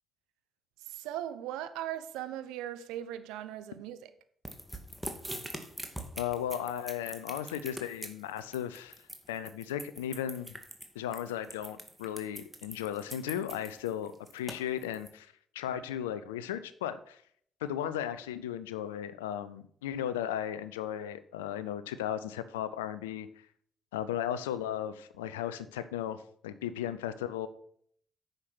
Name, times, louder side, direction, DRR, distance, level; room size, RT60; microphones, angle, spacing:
voice 1, 0.9-4.0, right 12 dB, 75° right, 0.7 m, -38 dB
sound 1, 4.5-15.1, right 1 dB, 5° right, 2.2 m, -43 dB
voice 2, 6.2-9.0 9.3-10.5 10.9-17.2 17.6-23.3 23.9-27.5, left 10 dB, 80° left, 0.5 m, -36 dB
9.8 x 6.7 x 6.0 m
hypercardioid pair, 40°, 0 cm